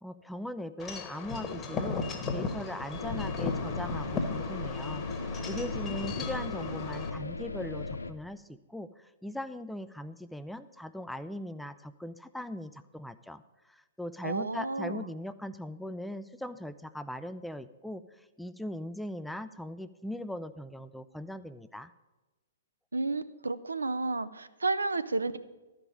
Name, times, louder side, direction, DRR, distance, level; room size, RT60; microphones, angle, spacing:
voice 1, 0.0-13.4 13.7-21.9, left 1 dB, ahead, 11 dB, 0.4 m, -40 dB
Wind chime / Wind, 0.8-7.1, left 4 dB, 20° left, 1.2 m, -36 dB
sound 1, 2.9-8.1, left 3 dB, 80° left, 0.6 m, -37 dB
voice 2, 14.2-15.1 22.9-25.4, right 3 dB, 75° right, 13 dB, 0.5 m, -31 dB
12.0 x 5.3 x 7.4 m, 1.1 s
figure-of-eight pair, 115°, 0 cm